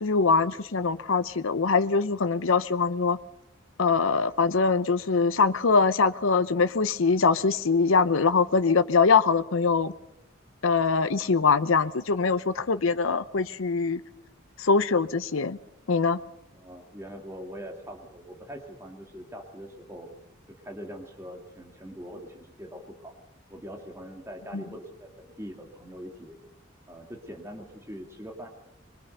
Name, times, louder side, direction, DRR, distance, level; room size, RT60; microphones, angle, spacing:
voice 1, 0.0-3.2 3.8-9.9 10.6-14.0 14.6-15.6 15.9-16.2 24.5-24.6, left 4 dB, 90° left, 12 dB, 0.8 m, -23 dB
voice 2, 16.5-20.1 20.6-23.1 23.5-26.4 26.9-28.5, equal, 15° right, 2 dB, 2.4 m, -42 dB
23.5 x 22.0 x 6.7 m, 0.83 s
head